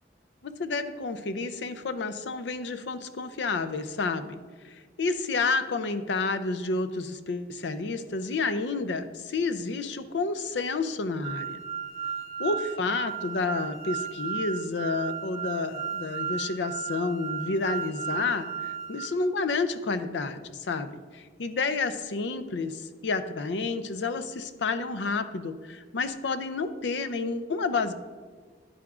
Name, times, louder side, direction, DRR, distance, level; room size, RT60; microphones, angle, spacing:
voice 1, 0.4-4.4 4.7-11.6 12.4-27.9, left 3 dB, 75° left, 11 dB, 0.5 m, -30 dB
sound 1, 11.2-19.1, right 7 dB, 50° left, 1.2 m, -35 dB
9.8 x 8.5 x 2.4 m, 1.5 s
head